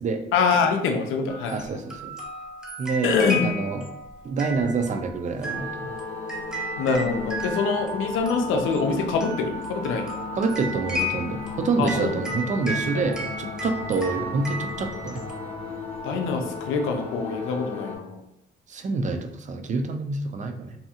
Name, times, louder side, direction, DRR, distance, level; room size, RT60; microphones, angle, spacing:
voice 1, 0.3-1.7 3.0-3.4 6.8-10.1 11.8-12.1 16.0-18.2, left 5 dB, 85° left, 4 dB, 0.5 m, -24 dB
sound 1, 1.3-16.0, equal, 5° right, 0.7 m, -35 dB
voice 2, 1.5-2.1 2.8-3.8 4.2-5.9 10.3-15.2 18.7-20.8, right 4 dB, 40° right, 6 dB, 0.4 m, -27 dB
sound 2, 5.4-18.0, left 4 dB, 30° left, 0.7 m, -35 dB
2.7 x 2.3 x 2.7 m, 0.85 s
cardioid pair, 90°, 20 cm